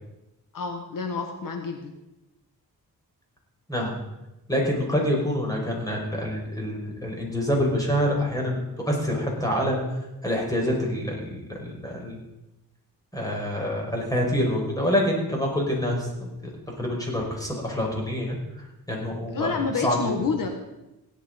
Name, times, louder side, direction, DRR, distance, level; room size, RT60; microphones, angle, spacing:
voice 1, 0.5-1.9 19.3-20.5, left 5 dB, 60° left, 4 dB, 1.7 m, -28 dB
voice 2, 3.7-4.0 4.5-8.6 8.9-9.8 10.2-12.2 13.1-16.3 16.8-18.4 18.9-19.5 19.8-20.0, equal, 10° left, -1 dB, 5.1 m, -26 dB
16.5 x 11.0 x 5.2 m, 0.96 s
cardioid pair, 90°, 36 cm